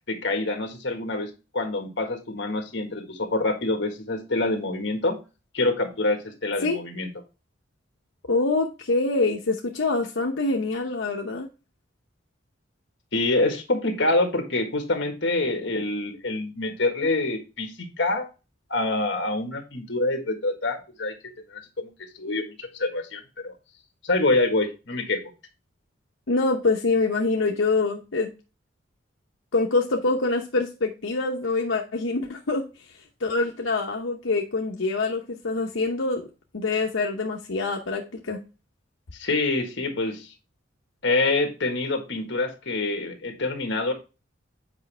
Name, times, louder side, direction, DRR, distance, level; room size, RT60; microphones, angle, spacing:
voice 1, 0.1-5.2 5.5-7.1 13.1-18.3 18.7-21.9 22.2-23.5 24.0-25.2 39.2-40.3 41.0-43.9, left 2 dB, 60° left, 5 dB, 1.6 m, -26 dB
voice 2, 8.3-11.5 26.3-28.3 29.5-32.7 33.2-36.2 36.5-38.4, left 3 dB, 80° left, 1 dB, 0.9 m, -25 dB
8.1 x 5.2 x 3.4 m, 0.31 s
head